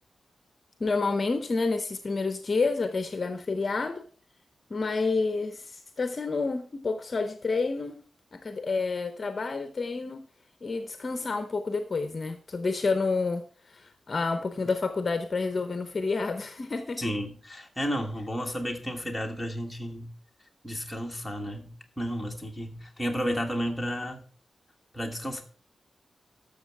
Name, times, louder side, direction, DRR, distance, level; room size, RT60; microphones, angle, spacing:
voice 1, 0.8-4.0 4.7-8.0 8.3-10.2 10.6-17.0, left 4 dB, 35° left, 9 dB, 0.8 m, -29 dB
voice 2, 17.0-20.1 20.6-24.2 24.9-25.4, equal, ahead, 1 dB, 1.4 m, -32 dB
12.5 x 6.5 x 4.6 m, 0.41 s
wide cardioid pair, 175°, 0 cm